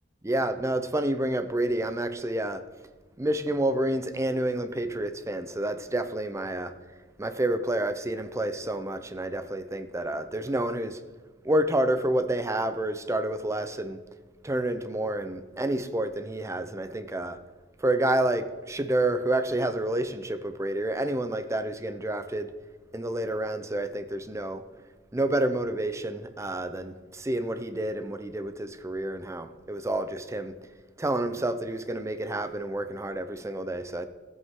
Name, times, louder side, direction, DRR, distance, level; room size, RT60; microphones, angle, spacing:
voice 1, 0.2-2.6 3.2-6.7 7.2-11.0 11.4-14.0 14.4-17.4 17.8-22.5 22.9-24.6 25.1-30.5 31.0-34.1, right 1 dB, 15° right, 0.6 m, -29 dB
16.5 x 8.0 x 3.7 m
head